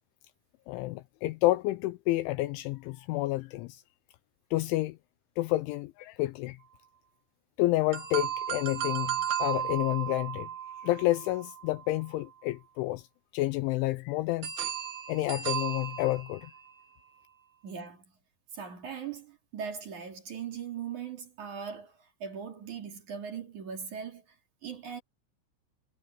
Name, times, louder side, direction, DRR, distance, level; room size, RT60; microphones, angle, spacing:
voice 1, 0.7-3.8 4.5-5.0 5.4-6.6 7.6-10.5 10.8-13.0 13.3-14.5 15.1-16.5, left 17 dB, 80° left, 2.8 m, -29 dB
sound 1, 7.9-12.0 14.4-16.8, right 9 dB, 60° right, 4.6 m, -35 dB
voice 2, 17.6-18.1 18.5-24.4 24.6-25.0, right 7 dB, 40° right, 4.0 m, -40 dB
omnidirectional pair, 5.8 m